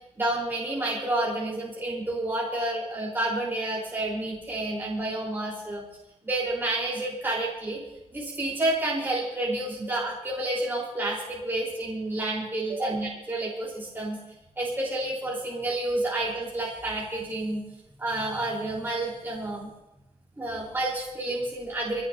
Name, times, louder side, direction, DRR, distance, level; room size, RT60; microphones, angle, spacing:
voice 1, 0.2-5.8 6.2-7.8 8.1-14.2 14.6-17.6 18.0-19.7 20.4-22.0, right 2 dB, 20° right, -5 dB, 4.1 m, -29 dB
25.0 x 18.0 x 2.8 m, 0.94 s
wide cardioid pair, 165°, 12 cm